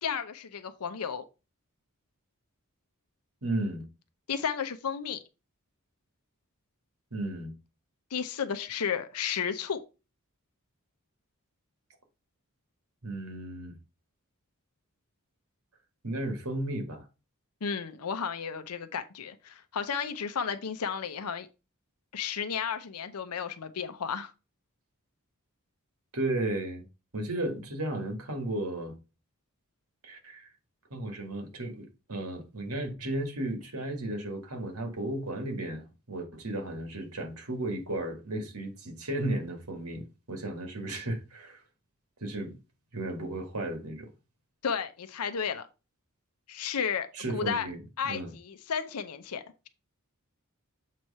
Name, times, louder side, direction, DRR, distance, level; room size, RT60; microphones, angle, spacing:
voice 1, 0.0-1.2 4.3-5.2 8.1-9.8 17.6-21.5 22.1-24.3 44.6-45.7 46.5-47.7 48.0-49.7, left 7 dB, 90° left, 0.7 m, -33 dB
voice 2, 3.4-3.8 7.1-7.5 13.0-13.7 16.0-17.1 26.1-26.9 27.1-28.9 30.0-30.5 30.9-41.6 42.2-42.5 42.9-44.1 47.1-48.3, right 1 dB, 80° right, 1.8 m, -34 dB
7.5 x 3.1 x 5.4 m
head